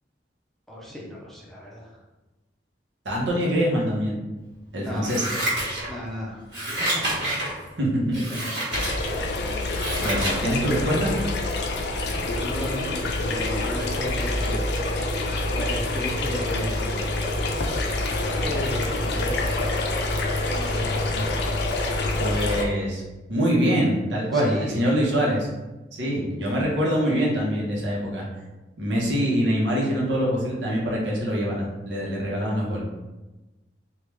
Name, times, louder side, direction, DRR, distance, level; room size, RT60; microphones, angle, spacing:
voice 1, 0.7-2.0 4.8-5.3 5.9-7.3 8.1-8.7 12.2-14.6 15.5-16.9 18.4-19.9 20.5-21.7 24.3-24.8 27.0-27.3, left 1 dB, ahead, -4 dB, 0.5 m, -35 dB
voice 2, 3.0-4.2 4.7-5.2 7.8-8.2 9.0-9.1 10.0-11.1 22.2-23.0 23.3-25.5 25.9-28.2 28.8-32.8, equal, 80° right, -4 dB, 0.9 m, -24 dB
Scissors, 5.0-6.1 6.5-7.5 8.1-8.9 9.4-10.4 10.8-10.9, right 1 dB, 65° right, 1.5 m, -28 dB
sound 1, 8.7-22.6, left 2 dB, 65° left, 0.5 m, -26 dB
3.4 x 2.4 x 3.1 m, 1.1 s
head